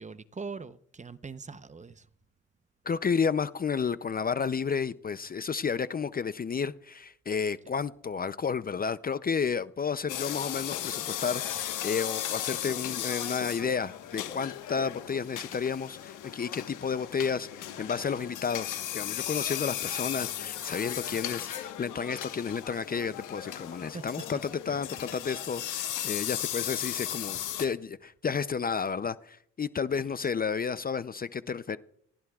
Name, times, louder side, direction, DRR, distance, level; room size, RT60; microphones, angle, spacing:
voice 1, 0.0-2.1 21.1-21.4 23.9-24.0, right 4 dB, 25° right, 0.8 m, -42 dB
voice 2, 2.9-31.8, left 6 dB, 30° left, 0.6 m, -31 dB
sound 1, 10.1-27.7, left 11 dB, 85° left, 1.4 m, -36 dB
27.5 x 19.0 x 2.4 m
cardioid pair, 90°, 30 cm